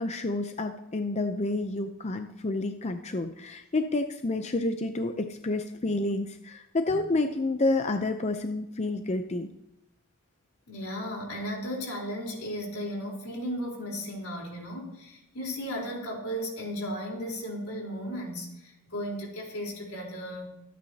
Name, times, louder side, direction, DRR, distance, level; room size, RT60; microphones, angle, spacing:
voice 1, 0.0-9.5, left 2 dB, 30° left, 7 dB, 0.6 m, -29 dB
voice 2, 10.7-20.5, equal, 80° left, -1 dB, 3.9 m, -35 dB
22.5 x 9.4 x 2.8 m, 0.84 s
head